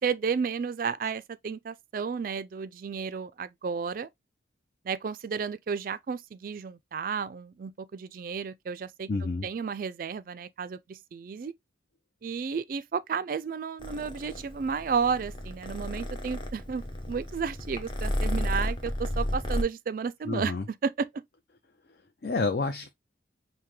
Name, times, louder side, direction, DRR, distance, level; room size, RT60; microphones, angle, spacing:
voice 1, 0.0-4.1 4.8-9.1 9.4-11.5 12.2-16.8 17.1-20.5 20.8-21.1, right 6 dB, 50° right, 0.3 m, -32 dB
voice 2, 9.1-9.5 20.2-20.7 21.9-22.9, left 3 dB, 55° left, 0.6 m, -30 dB
Purr, 13.8-19.6, left 1 dB, 25° left, 0.8 m, -33 dB
5.6 x 2.2 x 3.1 m
head